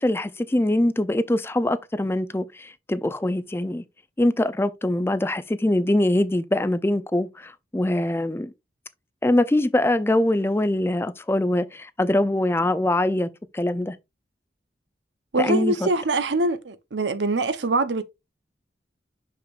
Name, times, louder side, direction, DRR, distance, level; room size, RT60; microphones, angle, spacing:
voice 1, 0.0-3.8 4.2-8.5 9.2-14.0 15.4-15.9, left 1 dB, 15° left, 0.4 m, -23 dB
voice 2, 15.3-18.0, right 2 dB, 90° right, 0.8 m, -23 dB
6.4 x 5.9 x 2.5 m
head